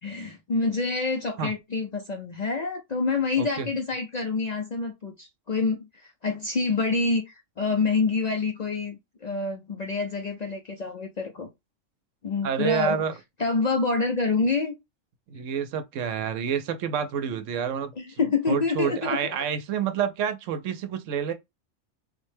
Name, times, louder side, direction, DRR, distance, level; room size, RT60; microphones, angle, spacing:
voice 1, 0.0-11.5 12.2-13.0 13.4-14.7 18.0-19.3, left 4 dB, 55° left, 0.4 m, -27 dB
voice 2, 3.4-3.7 12.4-13.1 15.3-18.2 18.5-21.3, right 8 dB, 85° right, 1.0 m, -28 dB
3.7 x 2.1 x 3.2 m
omnidirectional pair, 1.3 m